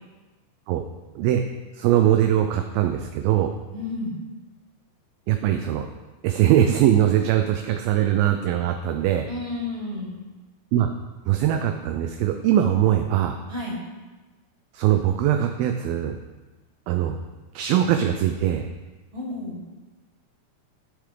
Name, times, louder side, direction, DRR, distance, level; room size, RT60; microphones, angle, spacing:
voice 1, 1.7-3.5 5.3-5.9 6.2-9.3 10.7-10.9 11.3-13.4 14.7-16.2 16.9-17.2 17.5-18.7, right 11 dB, 80° right, 5 dB, 2.3 m, -21 dB
voice 2, 3.7-4.2 9.3-10.1 13.5-13.8 19.1-19.6, left 2 dB, 30° right, -7 dB, 3.8 m, -31 dB
15.5 x 6.9 x 3.8 m, 1.2 s
omnidirectional pair, 4.6 m